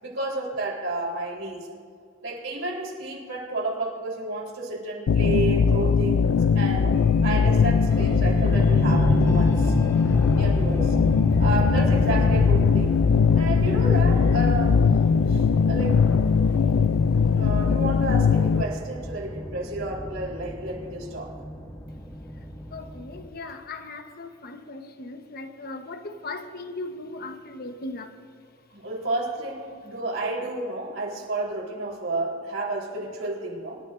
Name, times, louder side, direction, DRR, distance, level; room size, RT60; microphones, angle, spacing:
voice 1, 0.0-1.7 2.2-9.7 10.3-10.9 11.4-12.9 13.4-14.9 15.3-16.0 17.3-21.3 28.7-33.8, right 2 dB, 75° right, 3.8 m, -31 dB
sound 1, 5.1-18.6, left 6 dB, 85° left, 0.4 m, -20 dB
sound 2, 6.9-23.3, equal, 15° left, 1.2 m, -30 dB
voice 2, 11.6-12.0 13.6-14.2 22.7-28.2, left 2 dB, 50° left, 1.1 m, -38 dB
26.5 x 13.0 x 2.6 m
head